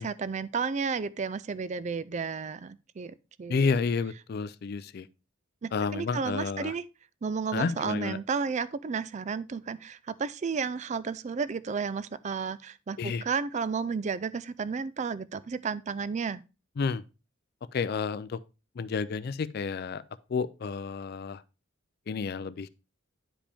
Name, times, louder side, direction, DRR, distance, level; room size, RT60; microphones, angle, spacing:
voice 1, 0.0-3.7 5.6-6.8 7.2-16.4, right 5 dB, 35° right, 0.4 m, -32 dB
voice 2, 3.5-5.1 5.7-6.7 7.5-8.2 13.0-13.2 16.8-17.0 17.7-18.4 18.8-20.0 20.3-21.4 22.1-22.7, left 5 dB, 50° left, 0.4 m, -30 dB
9.9 x 5.0 x 3.4 m
head